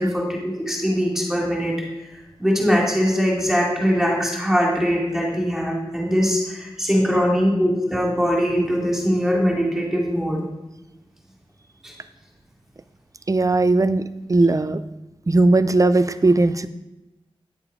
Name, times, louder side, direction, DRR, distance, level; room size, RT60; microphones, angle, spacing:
voice 1, 0.0-1.8 2.1-10.4 11.8-11.9, equal, 5° right, -2 dB, 2.5 m, -21 dB
voice 2, 13.3-14.8 15.3-16.7, right 2 dB, 35° right, 12 dB, 0.5 m, -18 dB
9.3 x 7.0 x 4.9 m, 1.0 s
wide cardioid pair, 95°, 10 cm